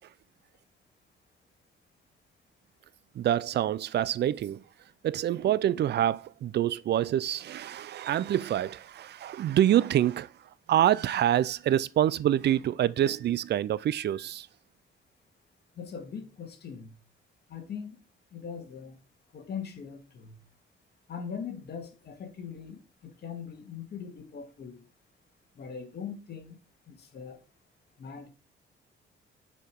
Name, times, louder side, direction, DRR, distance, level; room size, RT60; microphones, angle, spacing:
voice 1, 3.1-4.6 5.0-14.5, right 11 dB, 60° right, 0.5 m, -26 dB
voice 2, 15.8-17.0 17.5-18.0 18.3-19.0 19.3-20.4 21.1-24.9 25.6-26.6 26.9-27.4 28.0-28.3, left 6 dB, 55° left, 1.9 m, -41 dB
8.5 x 4.9 x 4.6 m
cardioid pair, 90°, 20 cm